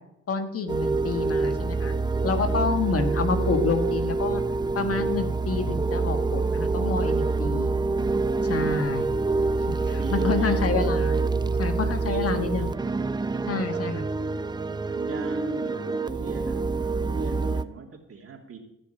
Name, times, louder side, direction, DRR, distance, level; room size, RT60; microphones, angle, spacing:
voice 1, 0.3-1.9 2.2-4.4 4.7-7.7 8.4-9.1 9.9-11.2 11.6-12.7 13.5-14.1, left 4 dB, 50° left, 6 dB, 1.8 m, -28 dB
sound 1, 0.7-17.6, right 3 dB, 15° right, 0.5 m, -26 dB
voice 2, 2.4-2.9 9.8-10.8 11.9-13.9 14.8-18.6, right 5 dB, 50° right, 2 dB, 2.7 m, -39 dB
16.5 x 6.8 x 7.2 m, 0.85 s
cardioid pair, 90°, 30 cm